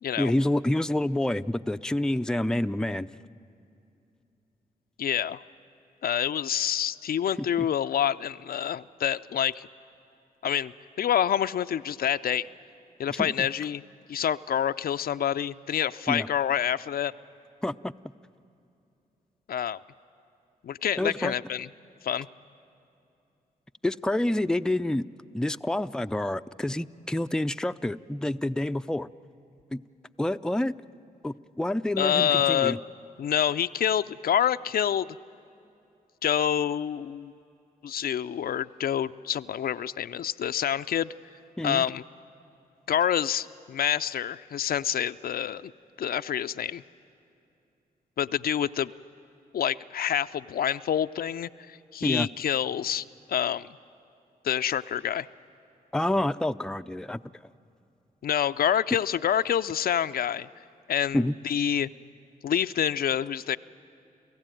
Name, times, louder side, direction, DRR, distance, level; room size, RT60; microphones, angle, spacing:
voice 1, 0.2-3.1 7.4-7.7 13.1-13.5 16.1-16.3 17.6-17.9 21.0-21.3 23.8-25.1 25.3-29.1 29.7-29.8 30.2-30.7 31.2-32.8 41.6-41.8 52.0-52.3 55.9-57.2 61.1-61.3, left 1 dB, 5° left, 10 dB, 0.5 m, -28 dB
voice 2, 5.0-5.4 6.0-9.7 10.4-12.5 13.0-13.8 14.1-17.1 19.5-19.8 20.6-21.7 22.0-22.3 32.0-32.8 33.2-35.1 36.2-37.3 37.8-41.1 41.6-42.0 42.9-45.7 46.0-46.8 48.2-48.9 49.5-53.7 54.4-55.3 58.2-60.5 60.9-61.9 62.4-63.6, left 9 dB, 70° left, 12 dB, 0.5 m, -27 dB
29.5 x 15.5 x 9.1 m, 2.7 s
cardioid pair, 55°, 16 cm